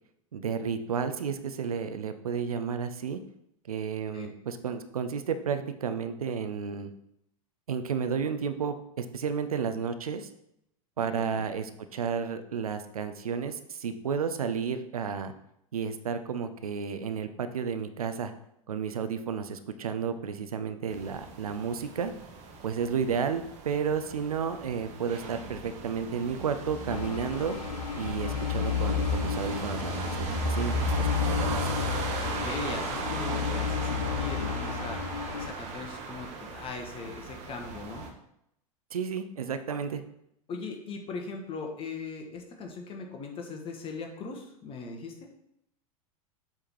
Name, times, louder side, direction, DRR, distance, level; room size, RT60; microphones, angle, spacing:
voice 1, 0.3-3.2 3.7-6.9 7.7-10.3 11.0-15.3 15.7-18.3 18.7-22.1 22.6-27.6 28.0-31.7 38.9-40.0, right 6 dB, 75° right, 9 dB, 0.6 m, -32 dB
voice 2, 11.0-11.4 32.2-38.1 40.5-45.3, left 4 dB, 30° left, 2 dB, 1.3 m, -40 dB
sound 1, 20.9-38.1, right 2 dB, 35° right, 1.2 m, -36 dB
sound 2, 26.9-35.5, left 7 dB, 80° left, 0.5 m, -32 dB
7.6 x 3.6 x 4.5 m, 0.78 s
figure-of-eight pair, 90°, 19 cm